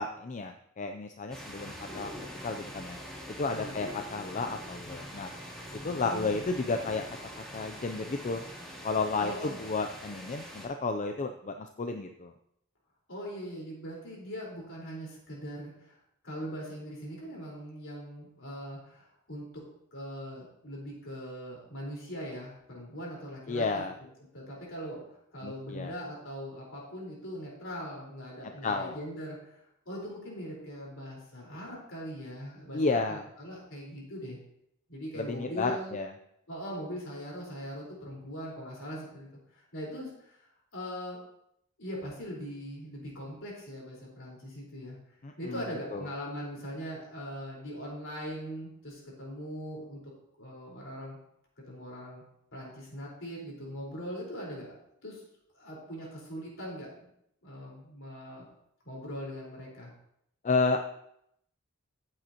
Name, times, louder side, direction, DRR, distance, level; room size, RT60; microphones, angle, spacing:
voice 1, 0.0-2.1 2.4-3.0 3.4-5.3 5.8-7.0 7.4-8.4 8.8-12.3 23.5-23.9 25.4-25.9 28.6-29.0 32.7-33.2 35.1-36.1 45.2-45.6 45.9-46.1 60.4-60.8, left 3 dB, 35° left, 6 dB, 0.5 m, -32 dB
sound 1, 1.3-10.7, equal, ahead, 2.8 m, -44 dB
voice 2, 6.0-6.4 9.2-9.6 13.1-16.0 16.2-19.6 19.9-23.8 24.3-29.6 29.9-34.4 34.9-35.9 36.5-39.3 39.5-40.4 40.7-41.2 41.8-45.0 45.4-50.0 50.4-51.2 51.7-52.2 52.5-54.7 55.0-55.2 55.5-57.1 57.4-58.5 58.8-59.9, equal, 65° left, -3 dB, 4.4 m, -41 dB
15.5 x 7.8 x 2.9 m, 0.75 s
head